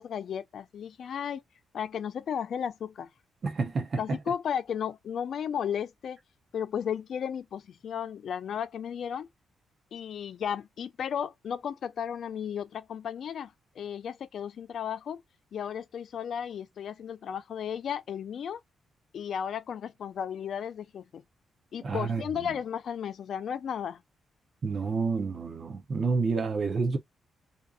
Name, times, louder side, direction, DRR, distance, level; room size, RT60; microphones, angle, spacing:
voice 1, 0.0-1.4 1.7-3.1 4.0-6.2 6.5-9.3 9.9-15.2 15.5-18.6 19.1-21.2 21.7-24.0, left 8 dB, 60° left, 0.3 m, -34 dB
voice 2, 3.4-4.2 21.8-22.5 24.6-27.0, right 4 dB, 40° right, 0.5 m, -29 dB
2.5 x 2.4 x 2.3 m
cardioid pair, 135°, 0 cm